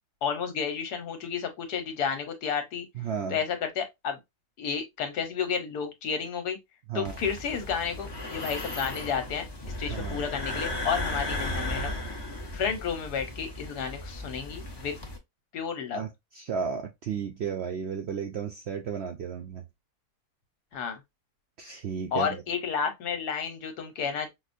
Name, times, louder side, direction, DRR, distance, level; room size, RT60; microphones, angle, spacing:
voice 1, 0.2-2.9 3.3-4.2 4.6-6.6 6.9-9.5 9.8-12.0 12.5-15.0 15.5-16.0 20.7-21.0 22.1-24.3, left 7 dB, 90° left, 1.5 m, -31 dB
voice 2, 3.0-3.4 6.9-7.2 9.9-10.2 15.9-19.6 21.6-22.4, right 7 dB, 75° right, 0.6 m, -33 dB
sound 1, 7.0-15.2, left 1 dB, 30° left, 0.4 m, -35 dB
5.9 x 2.1 x 2.5 m
omnidirectional pair, 1.6 m